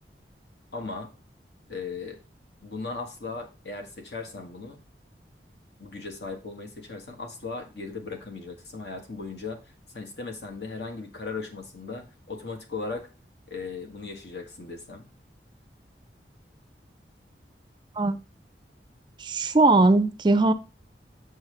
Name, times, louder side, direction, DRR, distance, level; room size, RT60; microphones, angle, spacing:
voice 1, 0.7-1.1 1.7-2.2 2.6-4.8 5.8-9.6 9.9-13.1 13.5-15.1, left 4 dB, 75° left, 1.6 m, -37 dB
voice 2, 19.2-20.5, right 2 dB, 25° right, 0.4 m, -20 dB
7.2 x 6.4 x 3.3 m
head